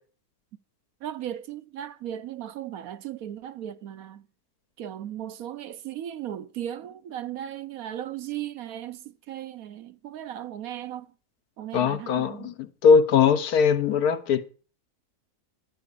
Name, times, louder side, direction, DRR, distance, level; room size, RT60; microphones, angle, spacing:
voice 1, 1.0-4.2 4.8-11.1 11.6-12.5, right 11 dB, 70° right, 1.1 m, -36 dB
voice 2, 11.7-14.5, left 6 dB, 75° left, 1.3 m, -21 dB
11.5 x 4.9 x 8.3 m
omnidirectional pair, 1.6 m